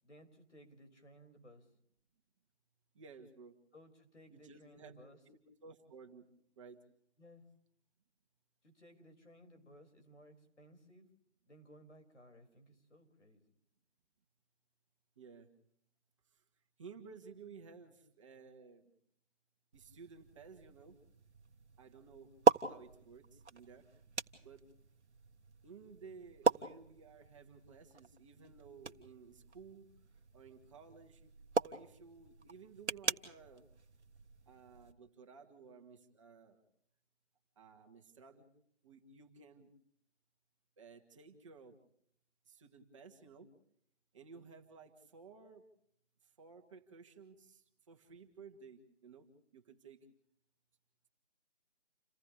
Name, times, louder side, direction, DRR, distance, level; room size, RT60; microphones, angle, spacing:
voice 1, 0.0-1.7 3.7-5.2 7.2-7.4 8.6-11.1 11.5-13.4, equal, 85° left, 5 dB, 6.1 m, -59 dB
voice 2, 2.9-3.6 4.3-5.0 5.3-6.3 6.6-6.8 15.2-15.5 16.3-16.4 16.8-18.8 19.7-21.0 21.8-22.4 22.6-24.0 24.4-24.7 25.6-29.9 30.3-31.3 31.6-33.7 34.5-36.6 37.6-38.5 38.8-39.7 40.8-41.8 42.5-43.5 44.1-45.7 46.2-50.1, right 5 dB, 25° right, 4 dB, 2.2 m, -56 dB
sound 1, 19.7-34.9, right 5 dB, 70° right, 1.6 m, -39 dB
30.0 x 28.5 x 3.4 m, 0.68 s
figure-of-eight pair, 165°, 35 cm